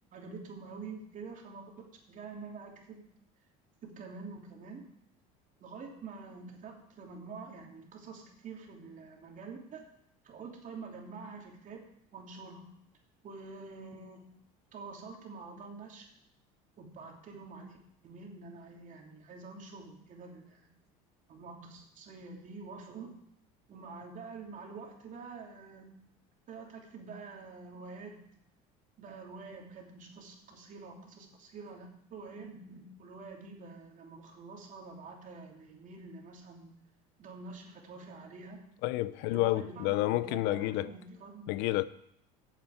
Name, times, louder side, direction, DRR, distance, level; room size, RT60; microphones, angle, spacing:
voice 1, 0.1-1.6 2.1-3.0 3.8-4.8 5.6-9.9 10.2-11.8 12.1-12.7 13.2-14.4 14.7-16.1 16.8-17.8 18.0-20.7 21.3-23.1 23.7-25.9 26.5-28.2 29.0-36.8 37.2-38.6 39.2-41.6, right 4 dB, 45° right, 3.1 m, -47 dB
voice 2, 38.8-40.9 41.5-41.9, left 17 dB, 70° left, 0.6 m, -29 dB
9.1 x 7.3 x 7.6 m
supercardioid pair, 100°, 18 cm